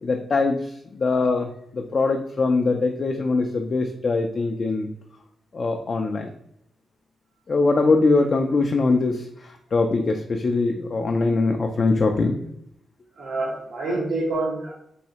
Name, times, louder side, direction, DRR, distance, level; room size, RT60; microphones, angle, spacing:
voice 1, 0.0-4.9 5.5-6.3 7.5-12.5, left 3 dB, 45° left, 3 dB, 0.3 m, -22 dB
voice 2, 13.1-14.7, right 2 dB, 80° right, -6 dB, 0.9 m, -27 dB
3.1 x 2.7 x 2.8 m, 0.75 s
cardioid pair, 95°, 0 cm